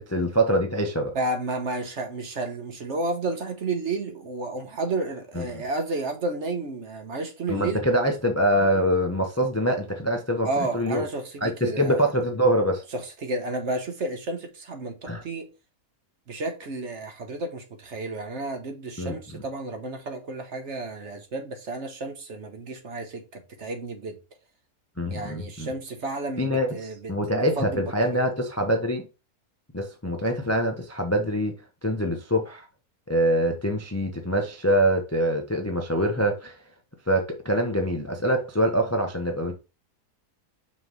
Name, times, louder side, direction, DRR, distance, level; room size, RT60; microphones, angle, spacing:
voice 1, 0.0-1.2 5.3-5.6 7.5-11.0 11.4-12.8 15.1-15.2 19.0-19.4 25.0-25.7 26.4-29.1 29.7-31.5 31.8-32.7 33.1-36.6 37.1-39.5, equal, 15° left, 0.5 m, -24 dB
voice 2, 1.1-7.8 10.4-12.1 12.9-15.5 16.3-24.2 25.1-27.1 27.6-28.3, right 2 dB, 50° right, 1.3 m, -32 dB
5.8 x 3.1 x 5.3 m
omnidirectional pair, 1.7 m